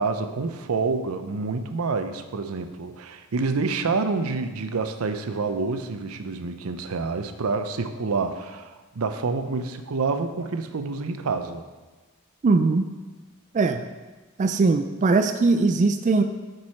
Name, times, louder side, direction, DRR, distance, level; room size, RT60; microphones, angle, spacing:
voice 1, 0.0-11.6, right 4 dB, 90° right, 9 dB, 0.6 m, -28 dB
voice 2, 12.4-12.9 13.5-13.8 14.4-16.2, right 3 dB, 35° right, 8 dB, 0.3 m, -20 dB
7.4 x 6.1 x 4.3 m, 1.2 s
head